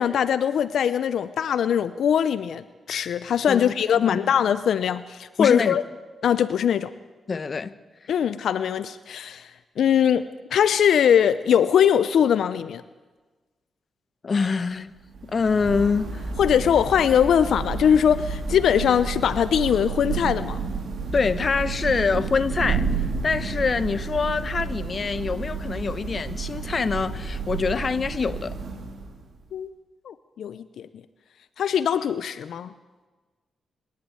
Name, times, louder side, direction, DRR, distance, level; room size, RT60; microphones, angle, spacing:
voice 1, 0.0-5.8 6.2-6.9 8.1-9.5 9.8-12.8 16.4-20.6 29.5-29.7 30.1-30.9 31.6-32.7, left 8 dB, 75° left, 0.7 m, -21 dB
voice 2, 3.5-4.3 5.4-5.8 7.3-7.7 8.0-8.1 14.2-14.9 15.2-16.3 21.1-22.9 23.2-28.6, left 5 dB, 45° left, 1.0 m, -25 dB
Thunder / Rain, 15.0-29.4, right 4 dB, 70° right, 3.7 m, -31 dB
25.0 x 11.5 x 9.5 m
cardioid pair, 85°, 0 cm